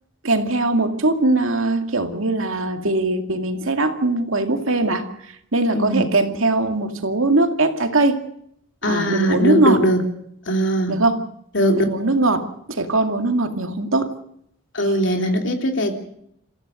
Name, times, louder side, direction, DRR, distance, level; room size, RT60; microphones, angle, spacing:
voice 1, 0.2-5.1 5.5-8.2 8.8-9.8 10.9-11.3 11.7-14.1, right 2 dB, 75° right, 2.3 m, -20 dB
voice 2, 5.7-6.1 8.8-10.0 10.5-11.0 11.5-11.8 14.7-15.9, equal, 60° left, 3.3 m, -20 dB
29.0 x 15.0 x 6.5 m
head